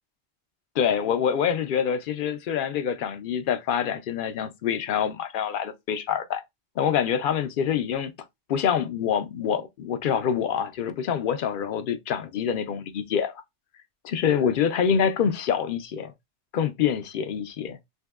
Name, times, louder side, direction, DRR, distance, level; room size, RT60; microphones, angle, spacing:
voice 1, 0.8-6.4 6.8-8.1 8.5-13.4 14.0-16.1 16.5-17.8, left 8 dB, 60° left, 0.6 m, -26 dB
3.6 x 2.7 x 2.2 m
omnidirectional pair, 1.1 m